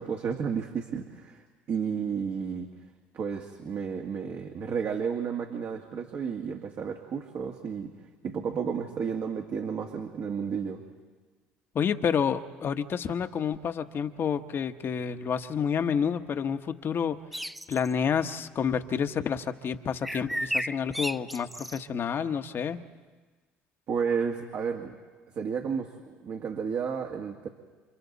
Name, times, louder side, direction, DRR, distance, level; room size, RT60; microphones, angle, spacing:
voice 1, 0.0-2.7 3.1-7.9 8.2-10.8 23.9-25.0 25.4-27.5, right 6 dB, 55° right, 2 dB, 2.0 m, -32 dB
voice 2, 11.7-17.2 17.7-22.8, left 7 dB, 50° left, 7 dB, 1.2 m, -29 dB
sound 1, 17.3-17.9 20.0-21.8, equal, ahead, 0.6 m, -33 dB
29.5 x 27.0 x 4.1 m, 1.4 s
hypercardioid pair, 70°, 5 cm